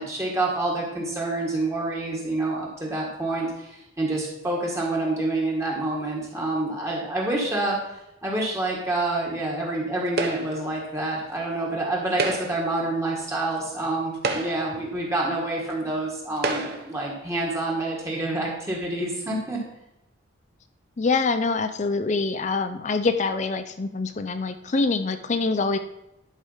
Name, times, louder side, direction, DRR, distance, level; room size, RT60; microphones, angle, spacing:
voice 1, 0.0-7.8 8.2-19.6, right 2 dB, 15° right, -3 dB, 1.6 m, -27 dB
sound 1, 10.2-10.7 12.1-12.7 13.6-13.7 14.1-14.8 15.7-15.8 16.4-17.0, right 2 dB, 50° right, 1.0 m, -29 dB
voice 2, 21.0-25.8, left 3 dB, 35° left, 9 dB, 0.4 m, -25 dB
11.0 x 4.8 x 5.6 m, 0.88 s
head